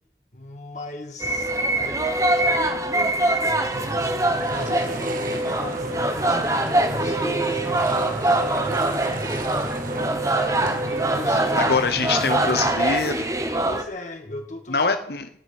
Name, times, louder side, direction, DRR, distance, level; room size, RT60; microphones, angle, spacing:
voice 1, 0.3-3.7 4.5-10.1 10.8-11.7 13.6-14.9, left 1 dB, 40° left, 3 dB, 2.0 m, -38 dB
sound 1, 1.2-13.8, right 1 dB, 20° right, 1.2 m, -23 dB
sound 2, 3.7-12.7, right 2 dB, 50° right, 1.0 m, -34 dB
voice 2, 11.6-13.3 14.7-15.3, left 4 dB, 60° left, 8 dB, 1.0 m, -24 dB
17.5 x 6.3 x 9.3 m, 0.70 s
head